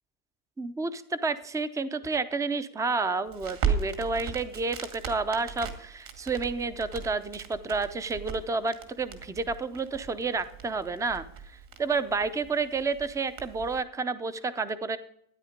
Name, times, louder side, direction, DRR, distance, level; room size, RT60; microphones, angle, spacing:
voice 1, 0.6-11.2 11.8-15.0, right 4 dB, 5° right, 13 dB, 0.5 m, -30 dB
Crackle, 3.3-13.8, right 6 dB, 50° right, 2.2 m, -37 dB
13.0 x 9.6 x 5.1 m, 0.72 s
cardioid pair, 130°, 44 cm